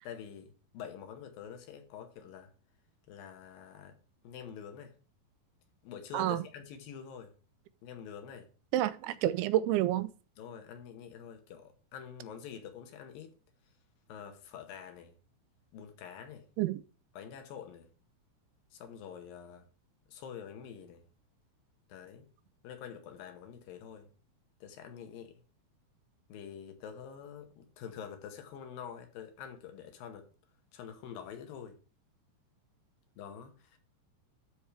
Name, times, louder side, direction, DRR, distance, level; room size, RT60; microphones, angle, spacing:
voice 1, 0.0-2.5 3.1-4.0 4.2-5.0 5.8-7.3 7.8-8.5 10.4-13.3 14.1-15.1 15.7-16.5 17.1-17.9 18.7-19.7 20.1-21.0 21.9-22.3 22.6-24.1 24.6-25.4 26.3-30.3 30.7-31.8 33.2-33.8, left 8 dB, 70° left, 2.5 m, -46 dB
voice 2, 8.7-10.1 16.6-16.8, right 13 dB, 85° right, 2.4 m, -29 dB
12.5 x 4.4 x 3.4 m
omnidirectional pair, 4.8 m